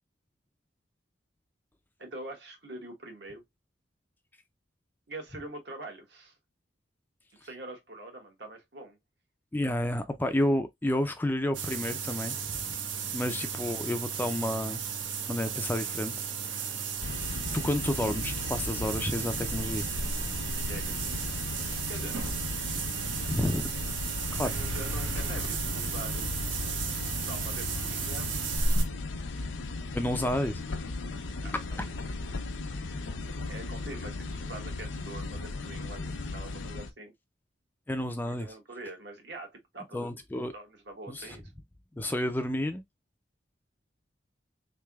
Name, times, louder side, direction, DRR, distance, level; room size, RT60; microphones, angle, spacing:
voice 1, 2.0-3.4 5.1-6.3 7.4-9.0 13.0-13.3 20.5-21.0 21.9-22.2 24.4-26.4 27.2-28.3 31.4-32.0 33.5-37.1 38.2-40.1 40.5-41.5, right 2 dB, 65° right, 1.2 m, -44 dB
voice 2, 9.5-12.4 12.6-12.8 13.1-14.8 15.3-16.3 16.5-16.9 17.5-19.9 23.3-23.7 24.3-24.5 29.9-30.6 37.9-38.5 39.9-40.5 41.1-41.4 42.0-42.8, left 1 dB, 10° left, 0.3 m, -30 dB
sound 1, 11.5-28.8, right 5 dB, 85° right, 0.7 m, -34 dB
sound 2, 17.0-36.9, left 3 dB, 90° left, 0.6 m, -37 dB
3.8 x 3.2 x 2.3 m
head